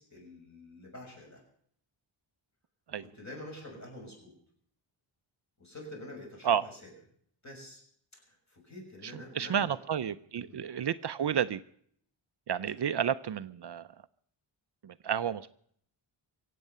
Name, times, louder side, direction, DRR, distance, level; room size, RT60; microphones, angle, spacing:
voice 1, 0.0-1.4 3.0-4.3 5.6-6.9 7.4-7.8 8.1-9.8 10.3-10.6, left 1 dB, 35° left, 0 dB, 6.3 m, -47 dB
voice 2, 9.0-11.6 12.5-13.9 14.8-15.5, right 8 dB, 55° right, 13 dB, 0.6 m, -31 dB
24.0 x 8.5 x 6.6 m, 0.64 s
wide cardioid pair, 180°, 49 cm